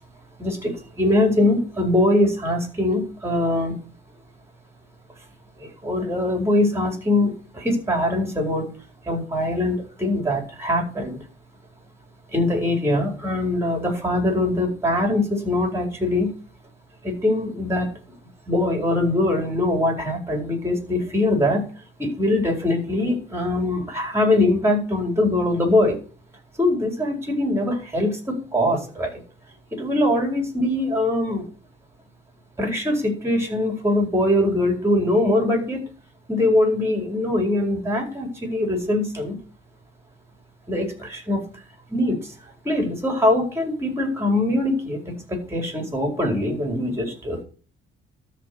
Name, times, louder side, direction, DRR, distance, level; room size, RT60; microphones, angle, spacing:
voice 1, 0.4-3.7 5.6-8.7 9.0-11.2 12.3-16.3 17.0-17.9 18.5-21.7 22.0-26.0 26.6-29.1 29.7-31.5 32.6-35.8 36.3-39.4 40.7-41.4 41.9-42.3 42.6-47.4, left 1 dB, 15° right, 3 dB, 4.5 m, -22 dB
13.0 x 4.5 x 6.9 m, 0.40 s
cardioid pair, 90°, 20 cm